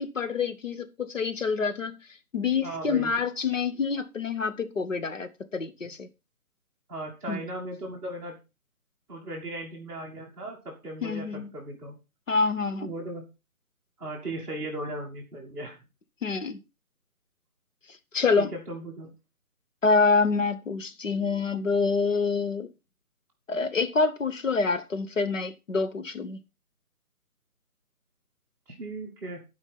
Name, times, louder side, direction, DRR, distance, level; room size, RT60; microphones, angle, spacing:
voice 1, 0.0-2.0 2.3-6.1 7.3-7.4 11.0-11.5 12.3-12.9 16.2-16.6 18.1-18.5 19.8-22.7 23.5-26.4, left 4 dB, 55° left, 1.5 m, -26 dB
voice 2, 2.6-3.1 6.9-8.4 9.1-12.0 12.8-13.3 14.0-15.8 18.4-19.1 28.8-29.4, right 1 dB, 5° right, 1.5 m, -37 dB
12.0 x 5.2 x 5.6 m
figure-of-eight pair, 155°, 45 cm